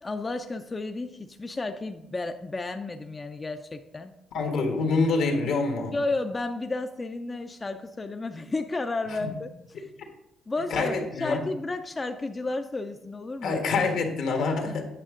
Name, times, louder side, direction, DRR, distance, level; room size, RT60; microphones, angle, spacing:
voice 1, 0.0-4.1 5.4-5.5 5.9-9.9 10.5-13.6, left 2 dB, 25° left, 6 dB, 0.4 m, -32 dB
voice 2, 4.3-5.9 10.7-11.4 13.4-14.8, left 4 dB, 80° left, 3 dB, 1.5 m, -26 dB
8.9 x 6.3 x 3.7 m, 0.86 s
cardioid pair, 90°, 0 cm